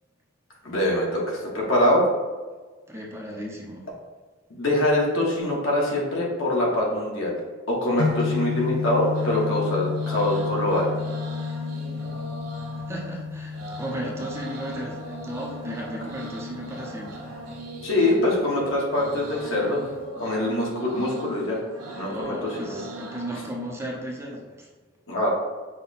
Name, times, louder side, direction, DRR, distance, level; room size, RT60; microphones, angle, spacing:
voice 1, 0.6-2.0 4.5-7.4 7.7-10.9 17.8-19.8 20.2-21.6 22.0-22.8 25.1-25.3, left 1 dB, 65° left, -3 dB, 1.1 m, -24 dB
voice 2, 2.9-3.9 12.9-17.2 22.0-24.7, right 1 dB, 10° right, -2 dB, 0.6 m, -35 dB
sound 1, 8.0-20.1, left 5 dB, 45° left, 0.4 m, -32 dB
sound 2, 9.1-24.0, right 1 dB, 90° right, 1.2 m, -40 dB
5.6 x 2.2 x 4.0 m, 1.3 s
head